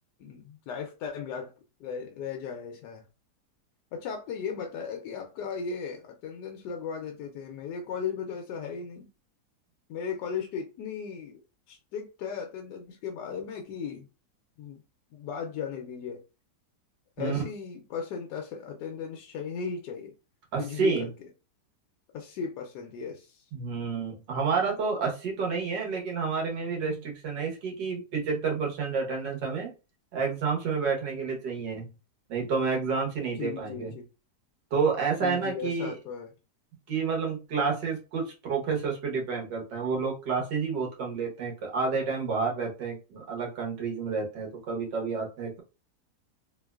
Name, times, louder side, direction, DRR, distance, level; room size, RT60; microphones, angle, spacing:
voice 1, 0.2-1.5 1.8-3.0 3.9-9.1 9.9-11.4 11.7-14.1 14.6-14.8 15.1-16.2 17.2-20.1 20.6-20.9 22.1-23.5 33.4-34.0 35.2-36.3, left 6 dB, 80° left, 1.1 m, -36 dB
voice 2, 20.5-21.1 23.5-29.7 30.1-31.8 32.3-33.9 34.7-35.9 36.9-45.6, right 5 dB, 90° right, 1.7 m, -29 dB
3.4 x 3.0 x 2.3 m
omnidirectional pair, 1.8 m